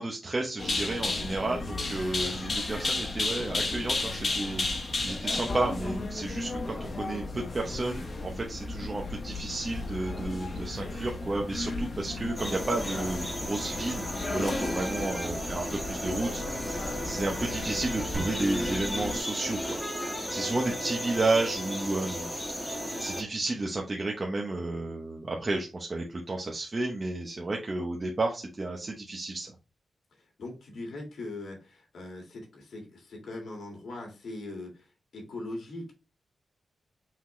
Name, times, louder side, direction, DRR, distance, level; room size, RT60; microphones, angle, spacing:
voice 1, 0.0-22.3 23.0-29.5, right 2 dB, 30° right, -1 dB, 0.8 m, -32 dB
sound 1, 0.6-19.2, left 2 dB, 50° left, 1.0 m, -34 dB
sound 2, 12.4-23.2, equal, 10° left, 1.5 m, -34 dB
sound 3, 18.1-19.8, right 2 dB, 55° right, 1.9 m, -40 dB
voice 2, 30.2-35.9, left 2 dB, 75° left, 0 dB, 1.8 m, -41 dB
5.7 x 2.8 x 3.1 m, 0.30 s
wide cardioid pair, 105°, 0 cm